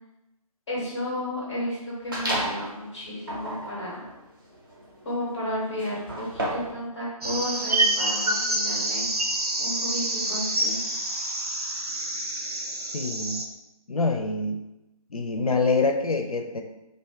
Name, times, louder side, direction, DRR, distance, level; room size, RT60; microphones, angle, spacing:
voice 1, 0.7-4.0 5.0-9.1 9.6-10.8, left 1 dB, 5° left, -6 dB, 0.5 m, -32 dB
sound 1, 2.1-2.7 3.2-6.8, right 1 dB, 35° right, 0.6 m, -32 dB
sound 2, 7.2-13.4, right 1 dB, 80° right, 0.6 m, -27 dB
voice 2, 12.9-13.4 13.9-14.6 15.1-16.6, left 3 dB, 70° left, 5 dB, 0.4 m, -25 dB
2.5 x 2.3 x 3.3 m, 0.94 s
figure-of-eight pair, 155°, 19 cm